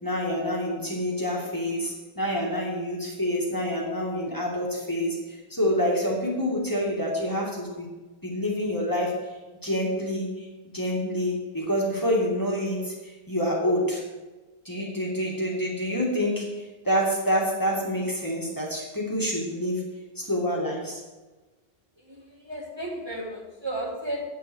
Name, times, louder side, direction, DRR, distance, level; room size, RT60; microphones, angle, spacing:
voice 1, 0.0-7.9 8.2-9.3 9.6-10.5 10.7-14.0 14.6-19.9 20.2-21.0, equal, 20° left, -3 dB, 2.2 m, -27 dB
voice 2, 22.1-24.2, right 1 dB, 25° right, -3 dB, 1.8 m, -34 dB
9.1 x 7.1 x 6.3 m, 1.2 s
omnidirectional pair, 1.0 m